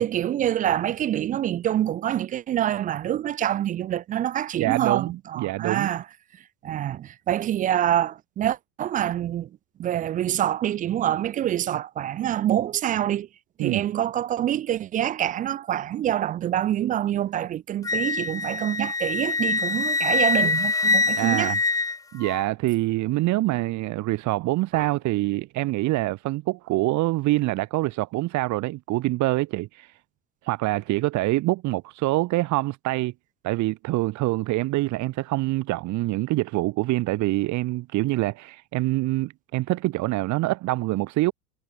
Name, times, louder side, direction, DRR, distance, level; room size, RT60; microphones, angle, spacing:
voice 1, 0.0-6.0 6.6-9.5 9.8-13.3 13.6-21.5 24.7-24.9, right 11 dB, 20° right, 0.4 m, -26 dB
voice 2, 4.6-5.9 13.6-13.8 21.1-21.6 22.1-30.0 30.4-33.1 33.4-41.3, right 19 dB, 40° right, 1.3 m, -25 dB
Wind instrument woodwind instrument, 17.8-22.4, left 3 dB, 10° left, 0.7 m, -24 dB
figure-of-eight pair, 75°, 43 cm